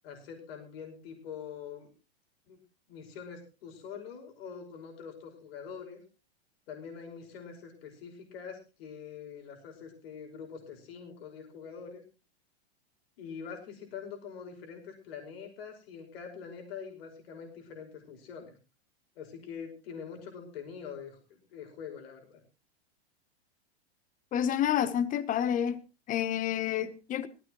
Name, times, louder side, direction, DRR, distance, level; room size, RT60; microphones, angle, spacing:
voice 1, 0.0-1.9 2.5-2.6 2.9-6.0 6.7-12.0 13.2-18.5 19.2-22.4, left 6 dB, 65° left, 5.4 m, -44 dB
voice 2, 24.3-25.8 26.1-27.3, left 9 dB, 25° left, 1.1 m, -29 dB
18.0 x 15.5 x 3.1 m
hypercardioid pair, 130°, 33 cm